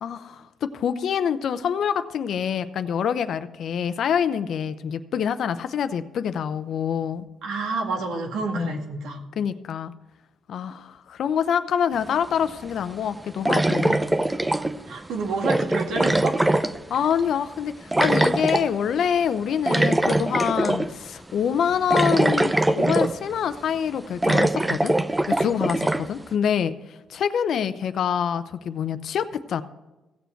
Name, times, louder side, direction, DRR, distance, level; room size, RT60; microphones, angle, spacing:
voice 1, 0.0-7.3 8.5-8.8 9.4-9.9 10.5-14.0 16.9-24.9 25.3-26.7 27.1-29.6, left 8 dB, 65° left, 12 dB, 0.7 m, -26 dB
voice 2, 7.4-9.2 14.9-16.4, right 3 dB, 80° right, 2 dB, 2.0 m, -28 dB
sound 1, 12.1-12.2 13.5-14.9 15.4-17.2 17.9-18.7 19.7-20.9 21.3-21.4 21.9-23.4 23.7-23.8 24.2-26.1, right 1 dB, 10° right, 0.6 m, -22 dB
16.0 x 7.0 x 4.5 m, 1.1 s
cardioid pair, 90°, 0 cm